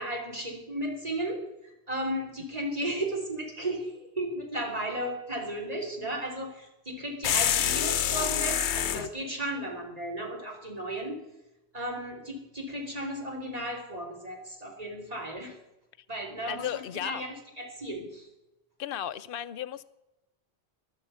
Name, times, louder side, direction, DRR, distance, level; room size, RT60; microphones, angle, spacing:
voice 1, 0.0-11.2 11.7-15.6 16.1-18.3, right 1 dB, 35° right, 0 dB, 3.0 m, -35 dB
sound 1, 7.2-9.1, left 9 dB, 85° left, 1.0 m, -26 dB
voice 2, 16.5-17.2 18.8-19.8, left 10 dB, 60° left, 15 dB, 0.7 m, -34 dB
13.5 x 12.0 x 5.5 m, 0.95 s
omnidirectional pair, 1.1 m